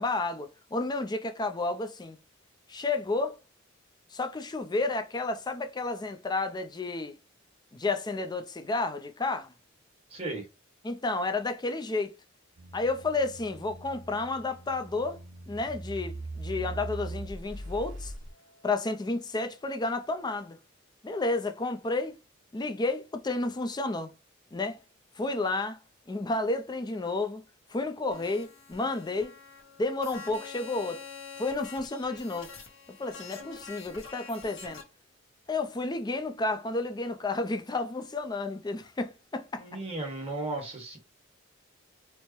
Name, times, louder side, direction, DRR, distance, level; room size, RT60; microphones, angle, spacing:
voice 1, 0.0-2.2 2.7-3.4 4.1-7.2 7.7-9.5 10.8-12.1 12.7-15.2 15.5-18.1 18.6-20.6 21.0-22.1 22.5-24.1 24.5-24.8 25.2-25.8 26.1-27.4 27.7-29.3 29.8-31.0 31.4-32.5 33.0-34.8 35.5-39.8, left 3 dB, 20° left, 0.4 m, -31 dB
voice 2, 10.1-10.5 39.6-41.0, right 2 dB, 30° right, 1.3 m, -35 dB
sound 1, 12.6-18.3, right 2 dB, 70° right, 0.9 m, -41 dB
sound 2, 28.1-34.8, left 5 dB, 60° left, 1.2 m, -46 dB
4.4 x 2.1 x 3.0 m
head